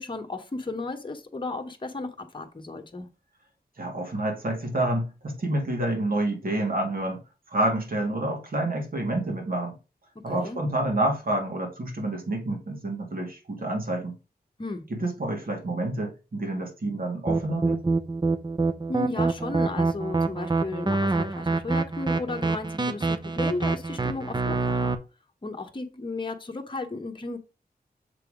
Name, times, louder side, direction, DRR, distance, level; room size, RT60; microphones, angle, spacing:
voice 1, 0.0-3.1 10.3-10.6 14.6-14.8 18.9-24.9 25.4-27.4, left 3 dB, 30° left, 1.0 m, -34 dB
voice 2, 3.8-7.2 7.5-9.7 10.2-14.2 14.9-17.8, right 1 dB, 60° right, 2.4 m, -28 dB
sound 1, 17.3-24.9, right 3 dB, 25° right, 0.7 m, -25 dB
6.9 x 3.5 x 4.9 m
wide cardioid pair, 100°, 17 cm